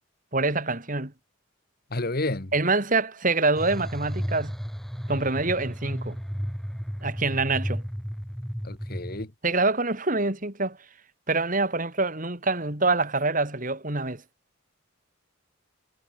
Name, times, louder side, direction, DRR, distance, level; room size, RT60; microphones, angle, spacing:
voice 1, 0.3-1.1 2.5-4.5 5.1-6.2 7.0-7.8 9.4-10.8 11.3-14.2, right 3 dB, 40° right, 3.2 m, -25 dB
voice 2, 1.9-2.5 8.6-9.3, left 2 dB, 45° left, 1.6 m, -30 dB
sound 1, 3.6-9.3, equal, ahead, 7.1 m, -33 dB
head